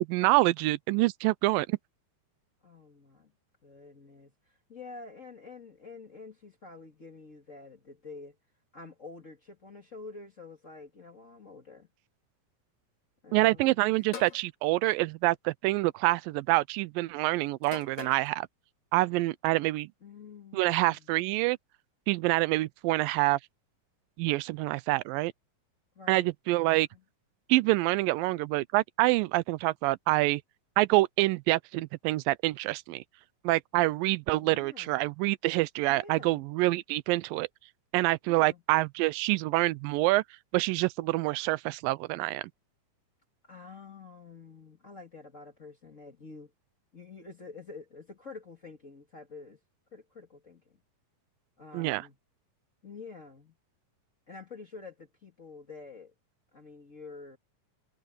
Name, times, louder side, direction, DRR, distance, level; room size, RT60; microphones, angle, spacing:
voice 1, 0.1-1.8 13.3-18.5 18.9-19.9 20.5-21.6 22.1-23.4 24.2-25.3 26.1-26.9 27.5-30.4 30.8-33.0 33.4-37.5 37.9-40.2 40.5-42.5 51.7-52.0, right 20 dB, 90° right, 2.3 m, -26 dB
voice 2, 2.6-3.3 3.6-8.4 8.7-11.9 13.2-14.1 20.0-21.1 26.0-26.3 26.7-27.0 34.4-35.0 35.9-36.4 38.3-38.6 43.4-46.5 46.9-49.6 49.9-50.8 51.6-52.2 52.8-53.5 54.3-56.1 56.5-57.4, left 4 dB, 30° left, 1.8 m, -48 dB
sound 1, 14.1-14.5 15.6-16.0 17.6-18.3, left 6 dB, 55° left, 3.9 m, -42 dB
omnidirectional pair, 3.9 m